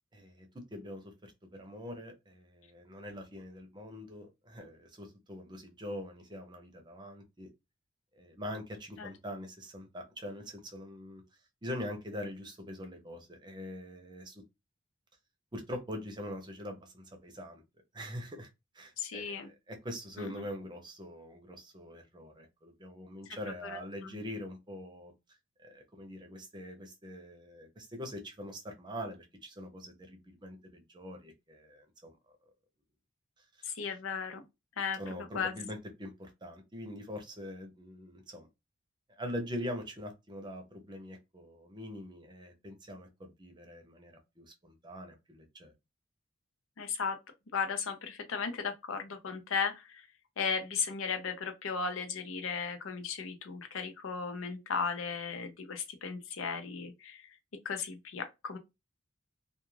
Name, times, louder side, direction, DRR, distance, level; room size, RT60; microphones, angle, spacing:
voice 1, 0.1-7.5 8.1-11.2 11.6-14.4 15.5-17.6 17.9-18.5 18.7-25.1 25.6-32.1 33.4-33.5 35.0-38.5 39.2-45.7, equal, 20° right, 0.6 m, -43 dB
voice 2, 19.0-19.5 20.2-20.3 23.6-24.2 33.6-34.4 34.8-35.0 35.3-35.5 46.8-47.2 47.5-50.0 50.4-57.2 57.6-58.6, left 5 dB, 80° left, 0.6 m, -35 dB
2.4 x 2.4 x 3.1 m
head